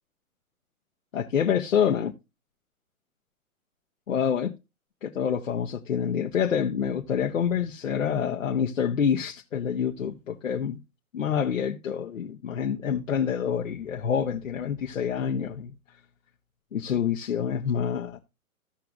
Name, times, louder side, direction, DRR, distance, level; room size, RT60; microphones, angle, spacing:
voice 1, 1.1-2.1 4.1-4.5 5.0-10.8 11.1-15.7 16.7-18.2, left 8 dB, 65° left, 1.2 m, -27 dB
16.0 x 5.8 x 2.5 m
figure-of-eight pair, 115°, 43 cm